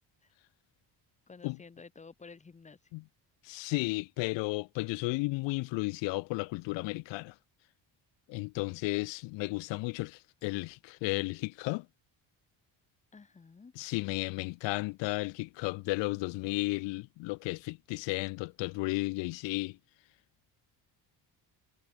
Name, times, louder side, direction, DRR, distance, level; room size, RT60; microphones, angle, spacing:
voice 1, 1.3-2.8 13.1-13.7, left 4 dB, 15° left, 1.0 m, -52 dB
voice 2, 3.4-7.3 8.3-11.9 13.8-19.8, left 24 dB, 75° left, 0.5 m, -33 dB
cardioid pair, 165°, 45 cm